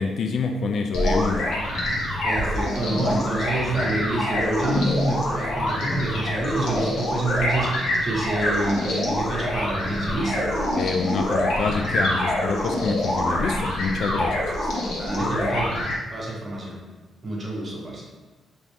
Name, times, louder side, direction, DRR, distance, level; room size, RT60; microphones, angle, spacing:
voice 1, 0.0-1.5 10.7-14.5, left 4 dB, 55° left, 4 dB, 0.3 m, -26 dB
sound 1, 0.9-15.9, left 1 dB, 80° left, 1.2 m, -25 dB
voice 2, 2.2-10.5 14.8-15.7 16.1-16.8 17.2-18.0, right 2 dB, 25° right, -4 dB, 1.0 m, -27 dB
5.3 x 3.0 x 3.2 m, 1.3 s
wide cardioid pair, 175°, 0 cm